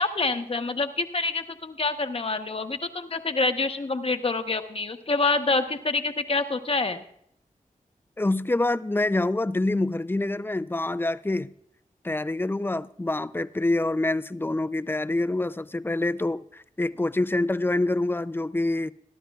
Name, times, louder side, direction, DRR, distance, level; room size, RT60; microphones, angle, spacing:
voice 1, 0.0-7.0, left 3 dB, 45° left, 1.0 m, -27 dB
voice 2, 8.2-11.5 12.0-18.9, left 2 dB, 15° left, 0.4 m, -26 dB
23.0 x 11.5 x 2.4 m
cardioid pair, 55°, 14 cm